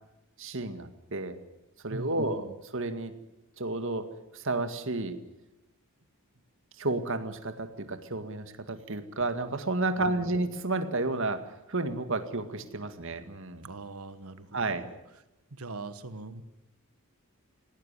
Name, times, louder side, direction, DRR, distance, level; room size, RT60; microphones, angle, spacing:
voice 1, 0.4-1.4 1.8-2.5 2.7-3.1 3.6-4.1 4.3-5.2 6.8-13.7 14.5-14.8, right 2 dB, 60° right, 9 dB, 2.0 m, -31 dB
voice 2, 1.9-2.5 10.0-10.4 13.6-15.0 15.5-16.4, right 3 dB, 80° right, 12 dB, 1.4 m, -42 dB
18.0 x 18.0 x 9.9 m, 0.95 s
head